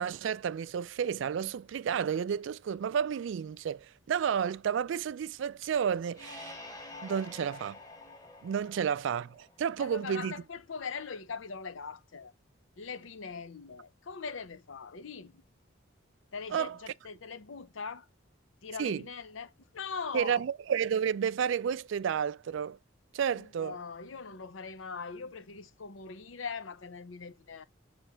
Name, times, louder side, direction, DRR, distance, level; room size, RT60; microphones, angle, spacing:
voice 1, 0.0-6.6 7.0-7.8 8.4-10.3 16.5-16.8 18.8-19.0 20.1-22.8 23.1-23.8, right 7 dB, 65° right, 0.3 m, -31 dB
sound 1, 6.1-9.7, left 2 dB, 20° left, 1.4 m, -48 dB
voice 2, 9.8-12.3 12.8-15.4 16.3-18.1 18.6-20.4 23.3-27.6, left 5 dB, 75° left, 0.7 m, -41 dB
6.0 x 3.2 x 5.6 m
head